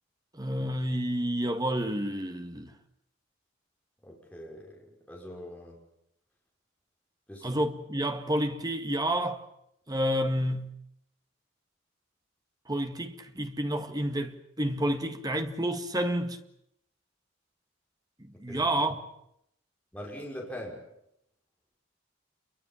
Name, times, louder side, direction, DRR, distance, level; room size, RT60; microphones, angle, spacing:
voice 1, 0.3-2.7 7.4-9.5 9.9-10.8 12.7-16.4 18.2-19.0, right 1 dB, 20° right, 2.0 m, -30 dB
voice 2, 4.0-5.8 7.3-7.7 18.3-18.7 19.9-20.9, equal, 5° left, 5.8 m, -43 dB
28.5 x 23.5 x 7.4 m
head